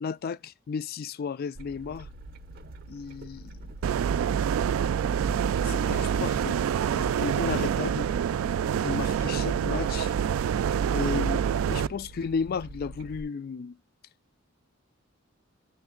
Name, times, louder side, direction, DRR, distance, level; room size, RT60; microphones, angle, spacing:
voice 1, 0.0-2.1 2.9-3.6 5.6-6.5 6.9-8.1 8.8-10.1 10.9-13.8, left 5 dB, 45° left, 0.3 m, -34 dB
sound 1, 1.6-13.2, right 2 dB, 45° right, 0.6 m, -46 dB
sound 2, 3.8-11.9, right 8 dB, 90° right, 0.3 m, -26 dB
9.8 x 3.3 x 3.7 m
head